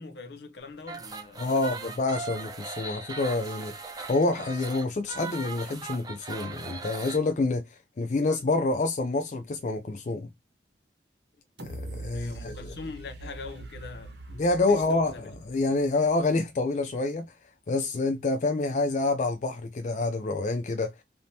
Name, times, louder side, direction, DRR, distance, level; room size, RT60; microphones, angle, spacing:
voice 1, 0.0-1.9 12.1-14.2 14.7-15.3, left 3 dB, 65° left, 0.7 m, -43 dB
sound 1, 0.8-7.2, right 4 dB, 20° right, 0.6 m, -39 dB
voice 2, 1.4-3.8 4.1-10.3 11.6-12.6 14.4-17.3 17.7-20.9, left 2 dB, 40° left, 0.4 m, -27 dB
sound 2, 11.6-16.5 16.9-17.0, right 2 dB, 75° right, 1.1 m, -43 dB
3.5 x 2.7 x 2.8 m
head